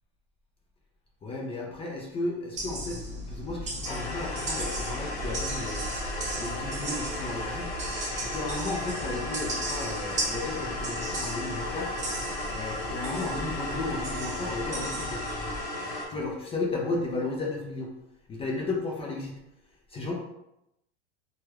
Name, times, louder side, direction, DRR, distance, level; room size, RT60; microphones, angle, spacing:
voice 1, 1.2-5.9 6.3-7.7 8.2-12.0 12.5-15.2 16.1-17.9 18.3-19.3 19.9-20.1, left 2 dB, 15° left, -1 dB, 0.4 m, -34 dB
sound 1, 2.5-15.6, right 1 dB, 20° right, 0.8 m, -36 dB
sound 2, 3.8-16.1, left 1 dB, 55° left, 1.0 m, -35 dB
3.1 x 2.3 x 3.0 m, 0.85 s
supercardioid pair, 120°, 34 cm